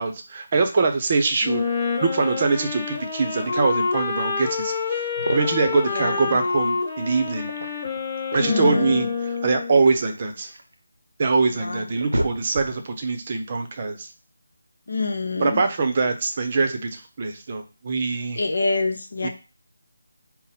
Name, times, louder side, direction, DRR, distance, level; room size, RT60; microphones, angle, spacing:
voice 1, 0.0-1.7 2.0-5.0 5.3-7.5 8.3-9.1 9.4-10.5 11.2-14.1 15.4-18.4 19.2-19.3, right 4 dB, 35° right, 5 dB, 0.7 m, -23 dB
Wind instrument woodwind instrument, 1.4-9.8, left 5 dB, 30° left, 1.2 m, -27 dB
sound 1, 5.1-5.8 7.2-8.1 9.4-10.7 11.3-11.4 11.8-12.9, right 1 dB, 90° right, 0.7 m, -31 dB
voice 2, 5.9-6.4 8.4-9.1 11.5-12.1 14.9-15.6 18.4-19.3, left 3 dB, 65° left, 5 dB, 0.8 m, -27 dB
4.1 x 2.1 x 4.1 m, 0.31 s
figure-of-eight pair, 160°, 0 cm